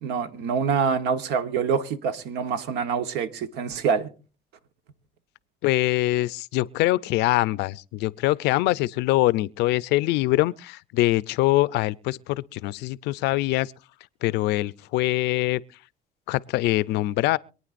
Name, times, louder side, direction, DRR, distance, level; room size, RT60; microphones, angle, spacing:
voice 1, 0.0-4.1, right 6 dB, 80° right, 1.2 m, -26 dB
voice 2, 5.6-13.7 14.2-15.6 16.3-17.4, left 18 dB, 90° left, 0.5 m, -23 dB
25.5 x 9.4 x 2.5 m
cardioid pair, 110°, 17 cm